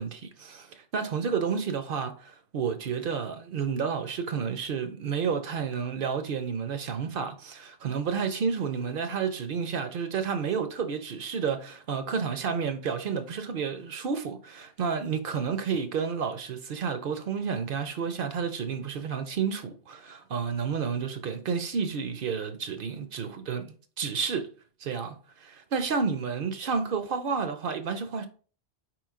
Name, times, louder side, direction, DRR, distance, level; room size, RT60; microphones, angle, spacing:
voice 1, 0.0-24.5 24.8-28.3, right 6 dB, 60° right, 0.7 m, -31 dB
4.7 x 3.1 x 3.6 m
omnidirectional pair, 1.1 m